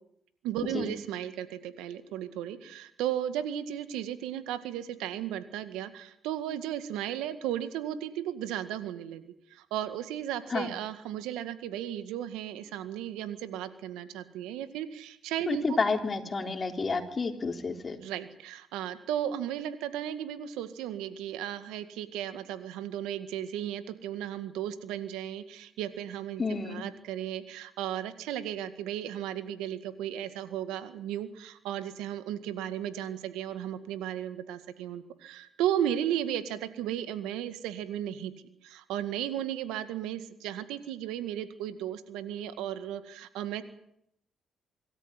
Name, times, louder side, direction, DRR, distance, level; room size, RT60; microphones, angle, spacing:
voice 1, 0.4-9.2 9.5-15.8 18.0-38.3 38.6-43.6, right 11 dB, 90° right, 11 dB, 1.9 m, -35 dB
voice 2, 15.5-18.0 26.4-26.8, left 4 dB, 40° left, 5 dB, 3.6 m, -30 dB
25.5 x 13.5 x 10.0 m, 0.74 s
supercardioid pair, 65°, 0 cm